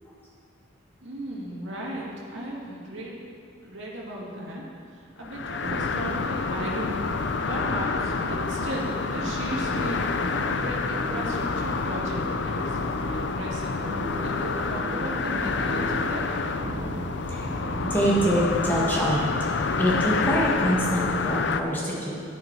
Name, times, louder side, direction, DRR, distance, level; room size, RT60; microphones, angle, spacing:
voice 1, 1.0-3.2 3.6-4.6 4.9-10.1 10.4-12.8 13.1-13.8 14.2-16.3, right 1 dB, 70° right, -4 dB, 2.2 m, -36 dB
sound 1, 5.2-21.6, left 4 dB, 60° left, 0.5 m, -28 dB
sound 2, 5.6-19.3, right 1 dB, 45° right, 0.9 m, -38 dB
voice 2, 17.8-19.5 19.8-22.2, equal, 10° left, -5 dB, 1.5 m, -25 dB
12.0 x 9.3 x 4.6 m, 2.4 s
head